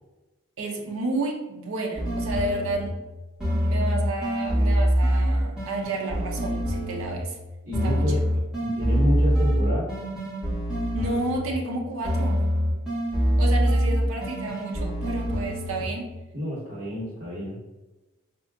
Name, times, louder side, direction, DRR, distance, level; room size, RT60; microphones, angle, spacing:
voice 1, 0.6-2.9 3.4-7.4 7.8-8.2 10.9-12.4 13.4-16.1, right 2 dB, 85° right, 0 dB, 0.6 m, -31 dB
sound 1, 2.0-3.0 3.4-7.4 7.7-11.7 12.0-16.0, equal, 5° right, 1.1 m, -25 dB
voice 2, 7.6-8.2 8.6-9.9 16.3-17.6, equal, 45° right, -10 dB, 1.4 m, -29 dB
4.3 x 2.7 x 2.3 m, 1.1 s
head